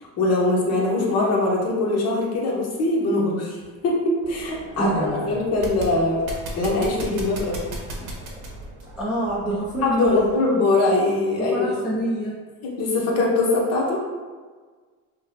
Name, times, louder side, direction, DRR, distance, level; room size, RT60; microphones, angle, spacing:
voice 1, 0.2-3.6 3.8-6.2 6.5-7.6 9.8-11.7 12.6-14.0, left 2 dB, 40° left, -3 dB, 0.9 m, -22 dB
sound 1, 4.2-10.4, right 1 dB, 80° right, 1.0 m, -37 dB
voice 2, 4.8-5.4 8.0-8.2 9.0-10.4 11.4-12.4, right 1 dB, ahead, -7 dB, 0.4 m, -26 dB
5.6 x 2.1 x 2.8 m, 1.5 s
cardioid pair, 150°, 37 cm